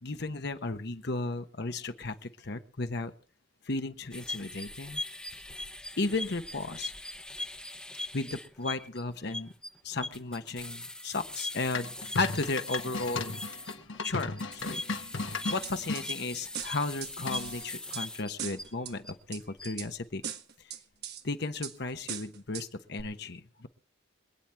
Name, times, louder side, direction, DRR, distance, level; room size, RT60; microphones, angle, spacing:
voice 1, 0.0-3.1 3.6-5.0 6.0-6.9 8.1-9.5 9.8-11.9 12.2-13.4 14.0-14.8 15.5-20.2 20.6-20.8 21.2-23.7, left 3 dB, 60° left, 8 dB, 1.1 m, -34 dB
sound 1, 4.1-19.1 19.5-19.9, left 2 dB, 5° left, 0.9 m, -41 dB
sound 2, 11.7-16.1 17.3-17.7, left 3 dB, 80° left, 1.6 m, -36 dB
sound 3, 15.6-16.1 16.5-18.0 18.4-18.9 19.3-19.9 20.2-21.2 21.6-21.7 22.1-22.7 23.0-23.1, right 9 dB, 55° right, 1.4 m, -39 dB
26.0 x 9.1 x 3.5 m, 0.38 s
head